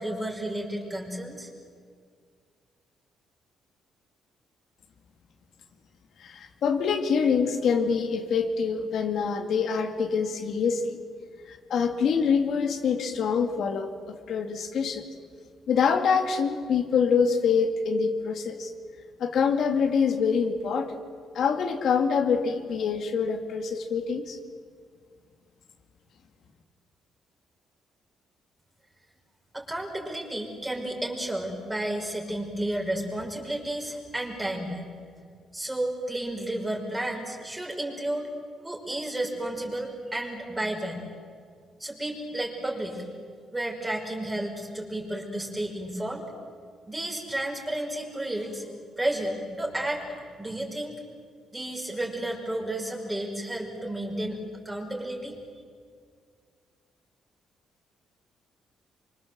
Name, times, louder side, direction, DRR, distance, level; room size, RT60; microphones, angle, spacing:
voice 1, 0.0-1.5 29.5-34.8 35.5-38.3 38.6-41.0 41.8-43.0 43.5-46.2 46.8-48.7 49.0-50.1 50.4-51.0 51.5-54.4 54.7-55.4, right 1 dB, 10° right, 1 dB, 5.2 m, -32 dB
voice 2, 6.2-11.0 11.5-15.0 15.7-18.7 19.2-21.0 21.3-24.4, left 6 dB, 65° left, 4 dB, 2.2 m, -25 dB
25.5 x 25.0 x 7.6 m, 2.1 s
cardioid pair, 110°, 0 cm